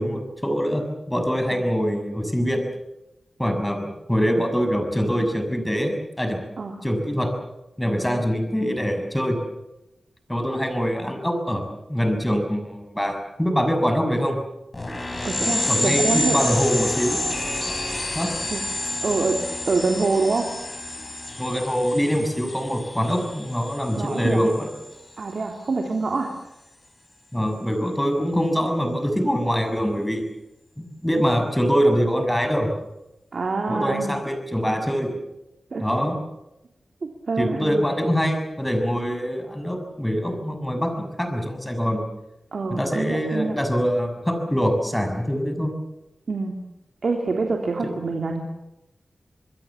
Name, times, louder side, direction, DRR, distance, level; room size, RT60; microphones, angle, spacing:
voice 1, 0.0-2.6 3.4-6.4 6.8-7.3 7.8-9.4 10.3-14.4 15.7-17.2 18.1-18.3 21.4-24.7 27.3-30.3 30.8-32.7 33.7-35.2 35.8-36.2 37.4-42.0 42.7-45.7 47.8-47.9, equal, 10° left, 6 dB, 6.4 m, -24 dB
sound 1, 14.7-24.9, left 2 dB, 30° left, 6.0 m, -29 dB
voice 2, 15.2-16.5 18.5-18.6 19.0-20.5 24.0-24.5 25.2-26.3 33.3-34.1 35.7-35.9 37.0-37.8 42.5-43.6 46.3-46.6 47.0-48.4, right 3 dB, 65° right, 1 dB, 3.1 m, -25 dB
27.0 x 21.5 x 7.3 m, 0.93 s
wide cardioid pair, 70°, 0 cm